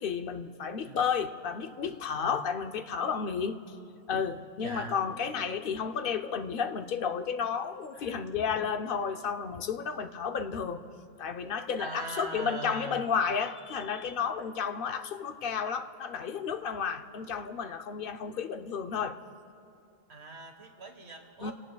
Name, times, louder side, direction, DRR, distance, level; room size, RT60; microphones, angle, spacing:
voice 1, 0.0-3.6 4.1-10.8 11.2-19.2 21.4-21.5, left 6 dB, 60° left, 7 dB, 0.8 m, -32 dB
voice 2, 4.6-5.0 7.9-8.2 11.8-13.1 20.1-21.5, right 3 dB, 85° right, 4 dB, 1.7 m, -41 dB
28.5 x 17.5 x 2.3 m, 2.6 s
omnidirectional pair, 1.1 m